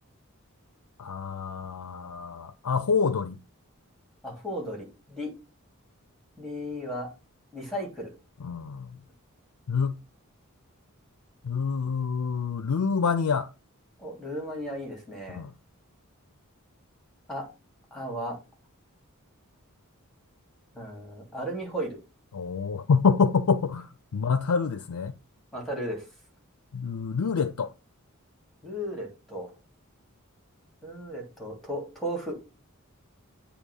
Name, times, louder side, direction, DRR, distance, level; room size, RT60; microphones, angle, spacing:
voice 1, 1.0-3.4 8.4-9.0 9.7-10.0 11.4-13.5 15.3-15.5 22.3-25.2 26.7-27.7, left 5 dB, 85° left, 0.5 m, -27 dB
voice 2, 4.2-5.3 6.4-7.1 7.5-8.1 14.0-15.4 17.3-17.5 17.9-18.4 20.7-22.0 25.5-26.0 28.6-29.5 30.8-32.4, equal, ahead, 2.9 m, -35 dB
8.6 x 2.9 x 6.3 m
head